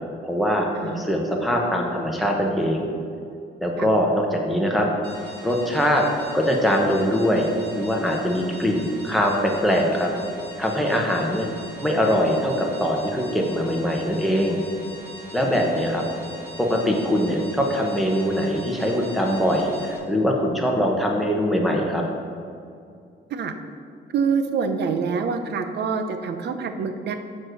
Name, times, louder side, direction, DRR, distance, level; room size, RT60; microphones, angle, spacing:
voice 1, 0.2-2.9 3.6-4.9 5.4-6.0 6.3-7.5 7.8-10.1 10.6-11.5 11.8-14.6 15.3-16.0 16.6-22.0, equal, ahead, -1 dB, 1.0 m, -22 dB
voice 2, 0.8-1.1 3.8-3.9 15.4-15.6 23.3-23.5 24.1-27.2, right 5 dB, 65° right, 8 dB, 0.7 m, -26 dB
sound 1, 5.0-20.0, equal, 25° right, 2.1 m, -41 dB
7.3 x 4.7 x 6.4 m, 2.4 s
cardioid pair, 155°, 19 cm